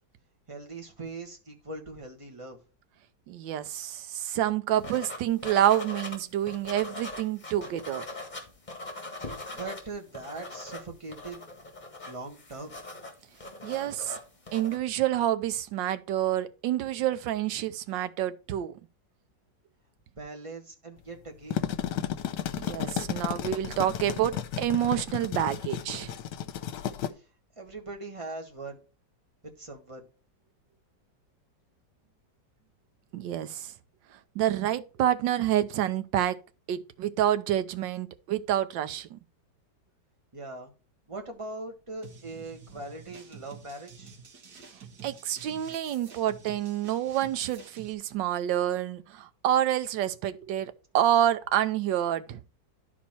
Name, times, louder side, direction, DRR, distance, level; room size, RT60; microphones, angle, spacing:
voice 1, 0.5-2.6 9.5-11.5 12.1-12.7 20.1-21.6 27.6-28.8 29.6-30.0 40.3-40.7 41.1-44.1, right 2 dB, 20° right, 1.3 m, -41 dB
voice 2, 3.3-8.0 13.6-14.2 14.5-18.7 22.6-26.1 33.1-33.7 34.3-36.4 36.7-39.2 45.0-52.4, right 11 dB, 85° right, 1.4 m, -28 dB
sound 1, 4.8-6.2 6.5-9.8 10.1-14.8, left 2 dB, 25° left, 1.9 m, -41 dB
sound 2, 21.3-27.1, left 10 dB, 75° left, 1.3 m, -33 dB
sound 3, 42.0-47.9, right 6 dB, 65° right, 1.9 m, -49 dB
11.5 x 4.4 x 4.4 m
omnidirectional pair, 1.9 m